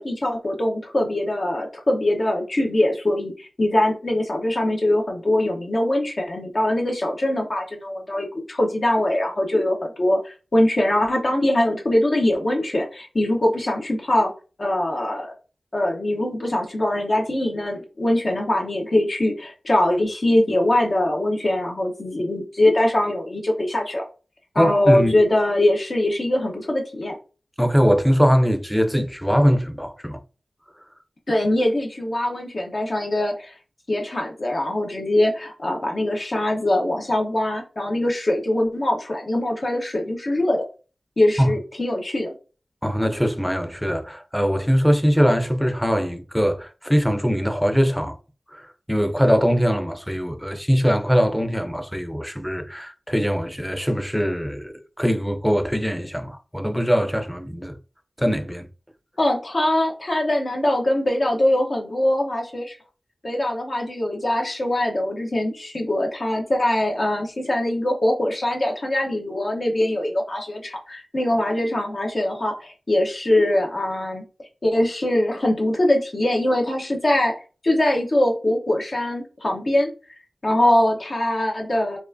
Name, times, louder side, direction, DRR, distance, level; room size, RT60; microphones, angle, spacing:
voice 1, 0.0-14.3 14.6-15.3 15.7-24.0 24.5-27.2 31.3-33.5 33.9-40.6 41.2-42.3 59.2-62.8 63.2-74.2 74.6-77.3 77.6-79.9 80.4-82.0, left 1 dB, 55° left, 0.9 m, -22 dB
voice 2, 24.6-25.2 27.6-30.2 41.4-41.5 42.8-48.2 48.5-57.8 58.2-58.7, equal, ahead, 0.6 m, -21 dB
4.5 x 2.5 x 2.6 m
wide cardioid pair, 55°, 0 cm